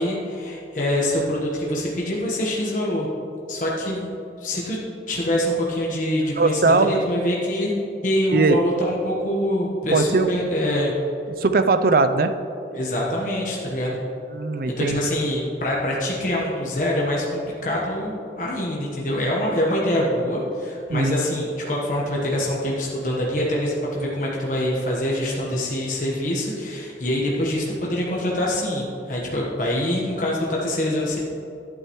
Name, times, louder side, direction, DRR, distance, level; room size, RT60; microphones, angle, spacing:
voice 1, 0.0-3.1 3.5-4.1 4.4-4.8 5.1-7.7 8.0-10.9 12.7-14.0 14.8-31.2, left 1 dB, 45° left, -4 dB, 1.2 m, -25 dB
voice 2, 6.4-7.1 8.3-8.6 9.9-10.3 11.4-12.3 14.3-15.0 20.9-21.2, right 3 dB, 55° right, 9 dB, 0.5 m, -19 dB
11.5 x 8.9 x 3.1 m, 2.8 s
head